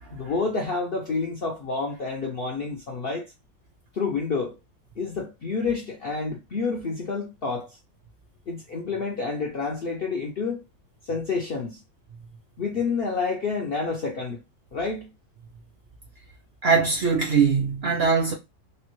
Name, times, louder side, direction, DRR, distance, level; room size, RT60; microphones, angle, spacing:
voice 1, 0.1-3.3 3.9-4.5 5.0-7.8 8.5-10.6 11.1-11.8 12.6-14.4 14.7-15.1, left 4 dB, 60° left, 0.6 m, -29 dB
voice 2, 16.6-18.3, right 5 dB, 55° right, 0.7 m, -22 dB
3.3 x 2.2 x 2.9 m
omnidirectional pair, 1.7 m